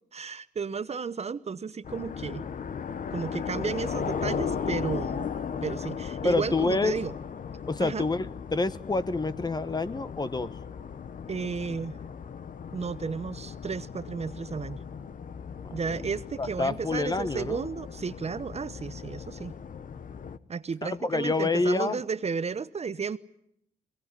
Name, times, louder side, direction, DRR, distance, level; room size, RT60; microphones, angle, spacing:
voice 1, 0.1-2.4 3.1-5.3 5.6-7.1 7.8-8.1 11.3-12.0 12.7-14.8 15.7-19.5 20.5-23.2, right 5 dB, 40° right, 0.9 m, -33 dB
sound 1, 1.8-20.4, left 6 dB, 50° left, 1.0 m, -37 dB
voice 2, 6.2-6.9 7.7-10.5 15.6-16.1 16.4-17.7 20.8-22.0, left 3 dB, 25° left, 1.0 m, -28 dB
22.0 x 19.0 x 9.7 m
cardioid pair, 80°, 17 cm